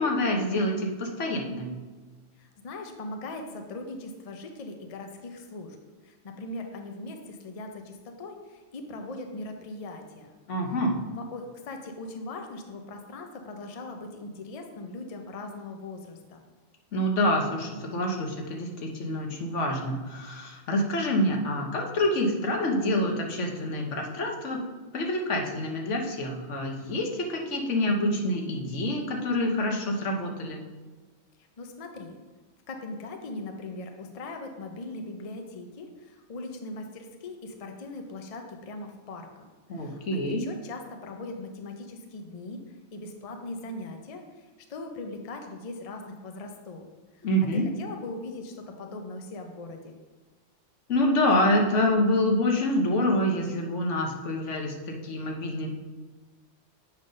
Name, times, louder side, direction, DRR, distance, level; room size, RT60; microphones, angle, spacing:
voice 1, 0.0-1.8 10.5-11.0 16.9-24.6 24.9-30.6 39.7-40.5 47.2-47.7 50.9-55.7, left 1 dB, 75° left, 2 dB, 1.3 m, -27 dB
voice 2, 2.4-5.8 6.0-10.3 11.1-16.4 31.6-32.2 32.7-39.5 39.7-40.0 40.4-46.9 47.1-47.3 47.5-50.0, left 2 dB, 40° left, 4 dB, 0.6 m, -40 dB
7.4 x 3.8 x 5.1 m, 1.3 s
omnidirectional pair, 1.3 m